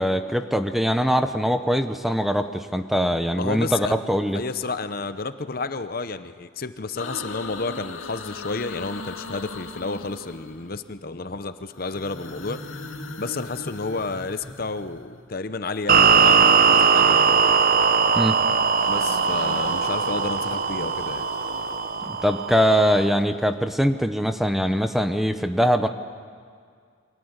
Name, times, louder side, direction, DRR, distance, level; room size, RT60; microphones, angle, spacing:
voice 1, 0.0-4.4 18.2-18.4 22.1-25.9, equal, ahead, 8 dB, 0.8 m, -22 dB
voice 2, 3.3-3.9 4.3-12.9 13.2-17.4 18.9-21.3, left 3 dB, 45° left, 11 dB, 0.8 m, -31 dB
sound 1, 7.0-10.9 11.6-15.4 16.7-17.9 18.3-23.3, left 3 dB, 90° left, 2.3 m, -39 dB
sound 2, 15.9-23.1, right 6 dB, 45° right, 0.8 m, -20 dB
28.5 x 23.5 x 8.2 m, 2.1 s
head